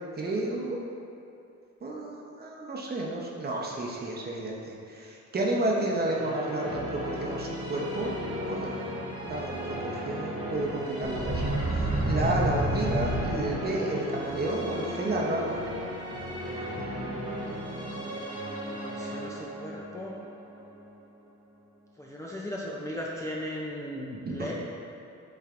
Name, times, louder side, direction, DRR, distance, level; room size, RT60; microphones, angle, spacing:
voice 1, 0.2-0.8 1.8-8.1 8.5-8.8 9.3-15.6 24.2-24.5, right 2 dB, 30° right, -2 dB, 0.8 m, -31 dB
sound 1, 5.7-21.8, equal, 15° right, 1.1 m, -37 dB
sound 2, 6.6-18.0, left 1 dB, 25° left, 0.8 m, -41 dB
sound 3, 11.0-13.8, right 1 dB, 55° right, 1.4 m, -28 dB
voice 2, 18.6-20.1 22.0-24.5, equal, 10° left, -5 dB, 0.4 m, -37 dB
6.7 x 3.2 x 2.5 m, 2.7 s
cardioid pair, 90°, 30 cm